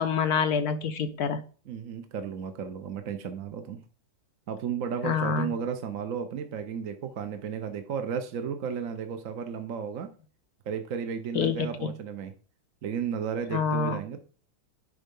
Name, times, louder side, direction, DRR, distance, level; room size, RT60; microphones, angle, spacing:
voice 1, 0.0-1.4 5.0-5.5 11.3-11.9 13.5-14.0, left 6 dB, 70° left, 9 dB, 1.0 m, -27 dB
voice 2, 1.7-3.8 4.5-10.1 10.7-12.3 12.8-14.2, right 7 dB, 60° right, 7 dB, 1.0 m, -33 dB
10.0 x 4.1 x 5.3 m, 0.40 s
omnidirectional pair, 2.0 m